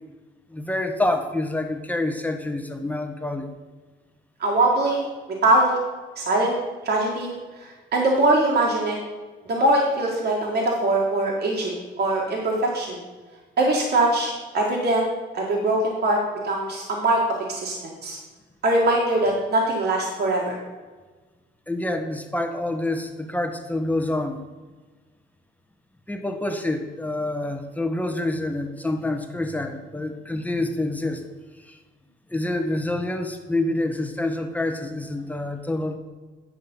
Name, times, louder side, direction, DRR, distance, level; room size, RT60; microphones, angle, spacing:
voice 1, 0.5-3.5 21.7-24.4 26.1-31.2 31.6-31.8 32.3-36.0, left 2 dB, 10° left, 5 dB, 1.1 m, -27 dB
voice 2, 4.4-5.0 5.4-5.8 6.2-6.5 6.8-9.0 9.5-13.0 13.6-15.1 15.3-16.2 16.4-17.2 17.5-18.2 18.6-20.6, right 2 dB, 55° right, -1 dB, 1.8 m, -22 dB
9.6 x 5.5 x 5.4 m, 1.3 s
cardioid pair, 90°, 20 cm